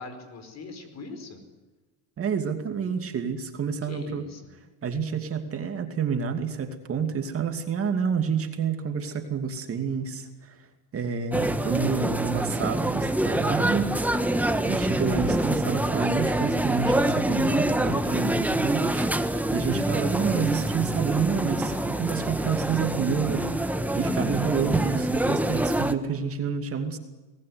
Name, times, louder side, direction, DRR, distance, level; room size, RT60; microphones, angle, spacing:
voice 1, 0.0-1.4 3.8-4.6, left 3 dB, 40° left, 9 dB, 4.8 m, -41 dB
voice 2, 2.2-4.3 4.8-10.6 10.9-14.3 14.6-23.7 24.0-27.0, right 6 dB, 30° right, 6 dB, 2.6 m, -29 dB
sound 1, 11.3-25.9, right 1 dB, 5° right, 1.3 m, -26 dB
23.0 x 19.5 x 9.6 m, 1.2 s
supercardioid pair, 125°, 42 cm